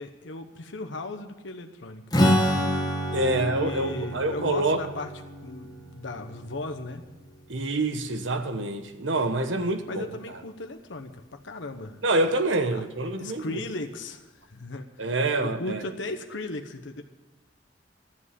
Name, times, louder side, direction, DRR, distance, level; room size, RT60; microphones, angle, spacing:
voice 1, 0.0-2.0 3.3-5.1 5.4-7.0 9.8-12.0 12.7-12.9 13.2-17.0, left 2 dB, 75° left, 1.0 m, -37 dB
Strum, 2.1-7.7, equal, 20° left, 1.6 m, -28 dB
voice 2, 3.1-4.8 7.5-10.1 12.0-13.6 15.0-15.8, right 2 dB, 90° right, 1.2 m, -26 dB
13.5 x 7.7 x 9.9 m
head